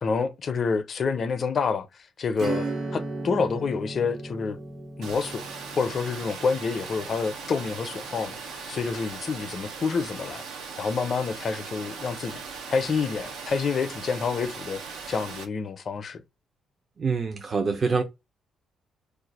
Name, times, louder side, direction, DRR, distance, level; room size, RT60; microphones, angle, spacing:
voice 1, 0.0-4.6 5.0-5.4 5.8-16.2, left 5 dB, 50° left, 0.4 m, -28 dB
Acoustic guitar / Strum, 2.3-8.6, right 2 dB, 60° right, 1.3 m, -36 dB
Water, 5.0-15.4, right 5 dB, 85° right, 0.6 m, -39 dB
voice 2, 17.0-18.0, right 4 dB, 40° right, 0.5 m, -25 dB
2.4 x 2.3 x 4.0 m
cardioid pair, 90°, 0 cm